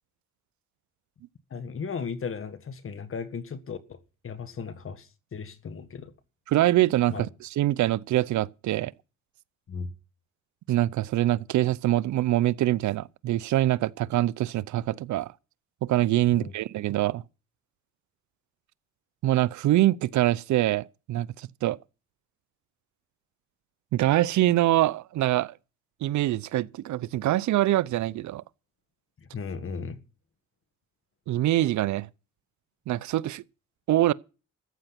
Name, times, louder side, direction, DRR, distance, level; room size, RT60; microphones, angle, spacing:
voice 1, 1.5-4.0 4.2-6.1 7.1-7.3 9.7-9.9 16.3-16.5 29.3-30.0, left 5 dB, 45° left, 1.9 m, -36 dB
voice 2, 6.5-8.9 10.7-15.3 15.8-17.2 19.2-21.8 23.9-25.5 26.0-28.4 31.3-32.1 32.9-33.4 33.9-34.1, right 14 dB, 75° right, 0.6 m, -24 dB
14.5 x 9.1 x 5.9 m
cardioid pair, 90°, 30 cm